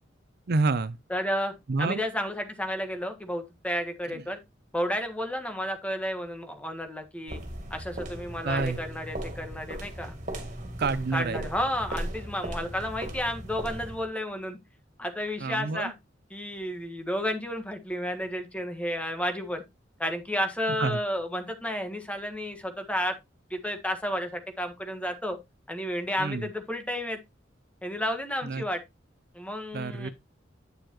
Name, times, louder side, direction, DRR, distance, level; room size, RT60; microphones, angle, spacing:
voice 1, 0.5-1.0 1.7-2.0 4.1-4.2 8.4-8.8 10.8-11.5 15.4-15.9 20.8-21.0 26.2-26.5 28.4-28.6 29.7-30.1, right 3 dB, 55° right, 0.6 m, -28 dB
voice 2, 1.1-1.5 1.8-4.4 4.7-7.4 7.7-10.1 11.1-14.6 15.0-15.9 16.3-19.6 20.0-23.1 23.5-25.4 25.7-27.2 27.8-28.8 29.3-30.1, equal, 5° left, 1.5 m, -32 dB
sound 1, 7.3-14.1, right 1 dB, 40° right, 2.6 m, -37 dB
9.5 x 6.8 x 3.0 m
head